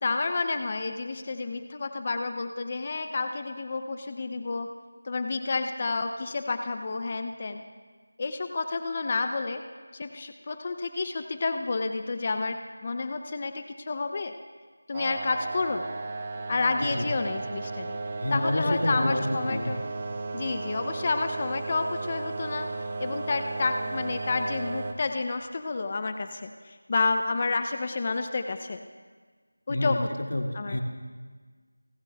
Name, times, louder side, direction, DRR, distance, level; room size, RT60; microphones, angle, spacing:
voice 1, 0.0-4.7 5.0-7.6 8.2-9.6 9.9-14.3 14.9-15.9 16.5-18.0 18.3-19.8 20.3-22.7 23.0-28.8 29.7-30.1 30.5-30.8, left 3 dB, 25° left, 8 dB, 0.4 m, -30 dB
sound 1, 14.9-24.9, right 3 dB, 20° right, 0.6 m, -35 dB
voice 2, 18.2-19.7 29.7-30.0 30.3-30.8, left 1 dB, 85° left, 3 dB, 1.9 m, -28 dB
29.5 x 10.5 x 2.2 m, 1.5 s
figure-of-eight pair, 175°, 0 cm